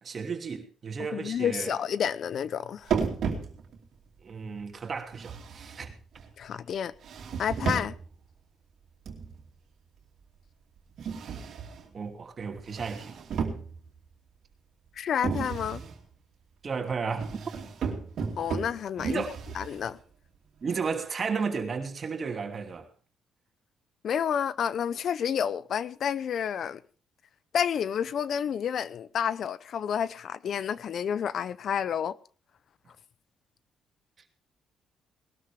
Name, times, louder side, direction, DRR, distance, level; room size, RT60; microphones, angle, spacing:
voice 1, 0.0-1.7 4.2-5.9 11.9-13.2 16.6-17.4 19.0-19.3 20.6-22.9, right 5 dB, 40° right, 2.8 m, -33 dB
voice 2, 1.1-2.9 6.4-6.9 7.4-7.9 15.0-15.8 18.4-19.2 19.5-20.0 24.0-26.8 27.5-32.1, left 8 dB, 60° left, 0.6 m, -30 dB
sound 1, 2.9-3.9 5.1-6.3 7.0-8.1 9.1-9.5 11.0-11.9 12.6-14.0 15.2-16.0 17.2-20.0, right 6 dB, 65° right, 2.7 m, -34 dB
20.0 x 12.5 x 3.5 m
cardioid pair, 90°, 0 cm